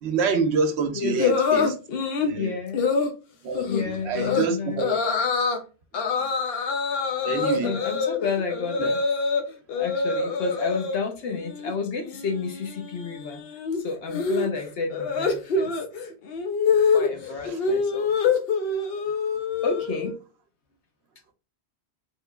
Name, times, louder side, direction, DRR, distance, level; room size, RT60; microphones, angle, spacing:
voice 1, 0.0-1.8 2.2-2.6 3.4-5.0 7.2-7.8 8.8-8.9 16.8-16.9 17.4-17.6, right 5 dB, 75° right, 0.9 m, -27 dB
voice 2, 0.9-1.3 2.3-2.9 3.7-4.8 7.6-9.0 9.7-13.4 13.7-15.8 16.8-18.1 19.6-20.1, left 5 dB, 90° left, 1.0 m, -31 dB
sound 1, 1.2-2.3 2.7-3.1 3.5-3.8 4.2-4.5 4.8-5.6 5.9-9.4 9.7-11.0 11.3-11.7 12.0-20.2, left 5 dB, 65° left, 0.8 m, -25 dB
3.7 x 3.1 x 2.3 m
omnidirectional pair, 1.1 m